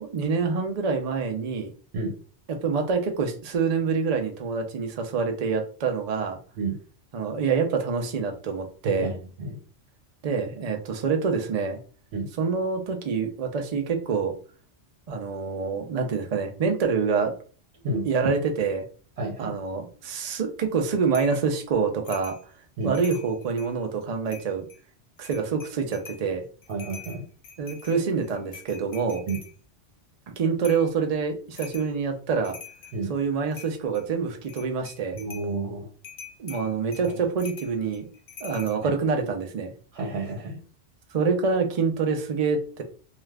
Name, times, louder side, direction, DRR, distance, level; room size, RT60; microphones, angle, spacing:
voice 1, 0.0-1.7 2.6-6.4 7.1-9.1 10.2-11.8 12.4-14.3 15.1-17.3 18.1-18.8 19.4-22.3 22.8-24.7 25.2-26.4 27.6-29.3 30.4-32.6 33.1-35.2 36.4-38.1 38.4-39.7 41.1-42.8, right 5 dB, 50° right, 4 dB, 0.5 m, -26 dB
voice 2, 8.8-9.6 12.1-12.3 17.8-18.1 19.2-19.5 22.8-23.0 26.7-27.3 29.3-29.4 32.9-33.1 35.1-35.9 37.0-37.2 38.8-38.9 39.9-40.6, right 2 dB, 75° right, -1 dB, 1.0 m, -30 dB
sound 1, 21.1-21.4 22.1-22.4 22.8-23.8 24.3-24.8 25.2-26.3 26.6-29.5 30.6-30.9 31.6-31.9 32.3-33.0 33.5-34.1 34.4-35.5 36.0-38.8, left 7 dB, 65° left, 0.8 m, -44 dB
2.4 x 2.4 x 3.2 m, 0.40 s
omnidirectional pair, 1.2 m